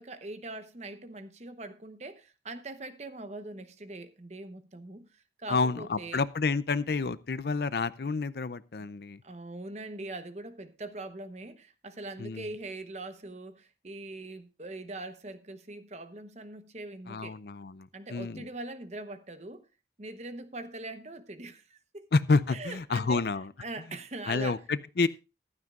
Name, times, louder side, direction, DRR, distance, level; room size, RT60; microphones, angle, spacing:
voice 1, 0.0-6.2 9.2-17.4 17.9-19.7 20.0-22.1 22.5-23.3 23.6-24.6, right 2 dB, 40° right, 0.9 m, -42 dB
voice 2, 5.5-9.2 12.2-12.5 17.1-18.5 22.1-23.5 24.3-25.1, left 4 dB, 60° left, 0.5 m, -29 dB
14.5 x 12.5 x 2.4 m
head